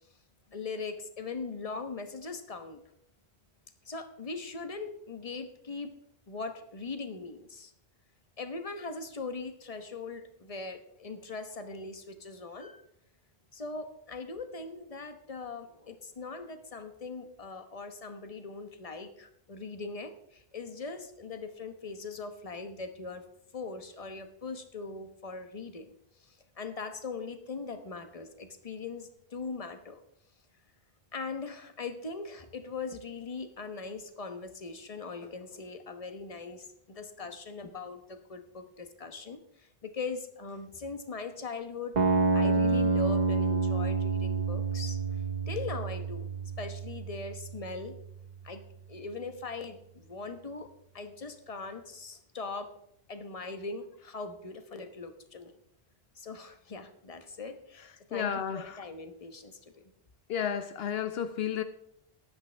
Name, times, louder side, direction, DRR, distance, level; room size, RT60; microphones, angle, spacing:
voice 1, 0.5-2.8 3.8-5.9 6.3-7.7 8.4-12.8 13.5-23.3 23.5-25.9 26.2-30.0 31.1-42.0 42.3-45.0 45.5-46.3 46.6-48.0 48.4-48.6 48.9-50.7 50.9-52.7 53.1-55.5 56.2-59.8, left 4 dB, 35° left, 1.1 m, -40 dB
sound 1, 42.0-48.0, right 4 dB, 45° right, 1.0 m, -28 dB
voice 2, 58.1-58.8 60.3-61.6, left 8 dB, 75° left, 0.8 m, -32 dB
14.5 x 11.0 x 3.4 m
omnidirectional pair, 1.0 m